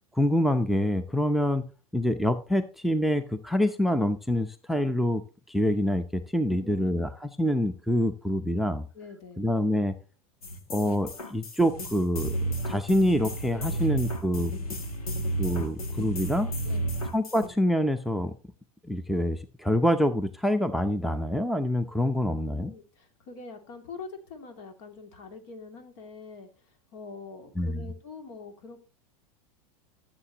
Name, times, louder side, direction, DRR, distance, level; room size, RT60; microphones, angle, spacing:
voice 1, 0.1-1.6 1.9-8.9 9.4-10.0 10.7-12.3 12.7-14.5 15.4-16.5 17.1-18.3 18.8-22.7 27.6-27.9, left 1 dB, ahead, 12 dB, 0.7 m, -26 dB
voice 2, 6.5-7.0 8.9-9.5 13.5-13.9 16.6-17.0 22.2-28.8, left 4 dB, 60° left, 6 dB, 2.6 m, -45 dB
sound 1, 10.4-17.5, right 1 dB, 90° left, 1.6 m, -32 dB
13.5 x 7.4 x 2.9 m, 0.35 s
hypercardioid pair, 95°, 18 cm